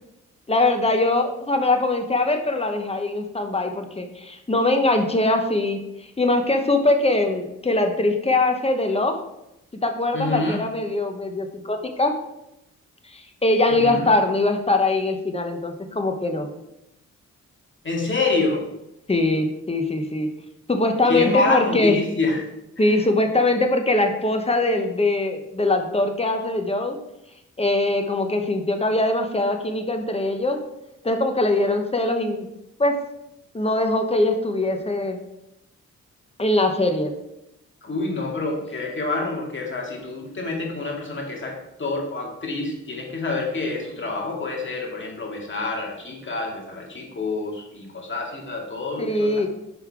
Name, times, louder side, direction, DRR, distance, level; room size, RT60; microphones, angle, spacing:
voice 1, 0.5-5.8 6.2-9.2 9.7-12.1 13.1-16.5 19.1-20.3 20.7-22.0 22.8-27.0 27.6-30.6 31.0-32.5 32.8-33.0 33.5-35.2 36.4-37.1 49.0-49.5, left 2 dB, 20° left, 5 dB, 1.1 m, -22 dB
voice 2, 10.1-10.6 13.7-14.1 17.8-18.7 21.0-22.5 22.8-22.9 37.8-49.5, left 3 dB, 40° left, -1 dB, 2.2 m, -27 dB
5.7 x 5.6 x 4.7 m, 0.87 s
cardioid pair, 75°, 31 cm